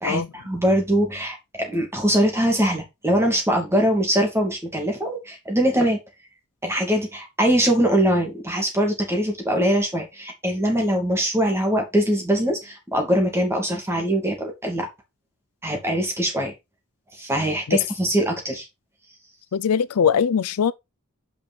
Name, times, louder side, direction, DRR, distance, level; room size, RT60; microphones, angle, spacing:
voice 1, 0.0-6.0 6.6-14.9 15.6-16.5 17.2-18.7, equal, 10° right, 2.6 m, -22 dB
voice 2, 19.5-20.7, left 7 dB, 85° left, 0.5 m, -21 dB
6.0 x 5.1 x 4.5 m
head